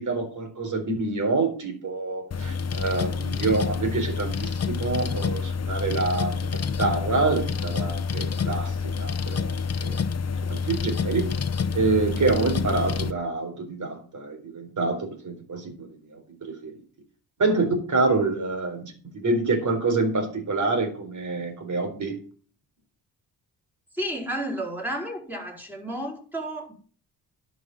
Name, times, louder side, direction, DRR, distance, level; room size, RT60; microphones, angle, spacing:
voice 1, 0.0-4.5 4.8-9.6 9.8-10.0 10.5-11.2 11.7-16.7 17.4-22.2, right 3 dB, 45° right, 4.2 m, -27 dB
sound 1, 2.3-13.1, left 5 dB, 40° left, 1.0 m, -28 dB
voice 2, 23.9-26.7, right 1 dB, 5° right, 4.8 m, -32 dB
11.0 x 5.9 x 7.7 m
cardioid pair, 75°, 41 cm